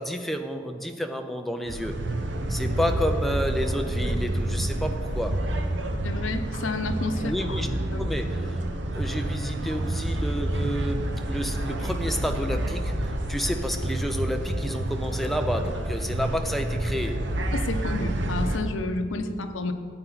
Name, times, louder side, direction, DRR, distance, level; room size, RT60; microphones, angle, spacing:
voice 1, 0.0-2.0 2.5-5.4 7.2-7.7 8.0-8.5 8.9-12.9 13.3-17.2, equal, ahead, 5 dB, 0.5 m, -30 dB
sound 1, 1.7-18.6, right 1 dB, 65° right, 0.8 m, -28 dB
voice 2, 6.0-7.6 7.9-8.1 17.5-19.7, left 2 dB, 80° left, 7 dB, 0.8 m, -30 dB
13.0 x 8.9 x 4.0 m, 2.1 s
head